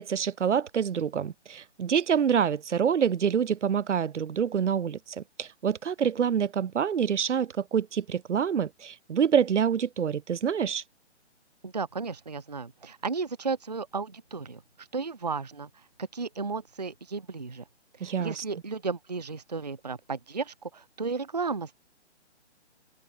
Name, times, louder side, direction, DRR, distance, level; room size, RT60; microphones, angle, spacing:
voice 1, 0.0-10.8 18.0-18.4, right 7 dB, 90° right, 0.8 m, -26 dB
voice 2, 11.6-15.7 16.1-17.6 18.0-21.8, right 4 dB, 35° right, 0.5 m, -34 dB
open air
hypercardioid pair, 180°, 35 cm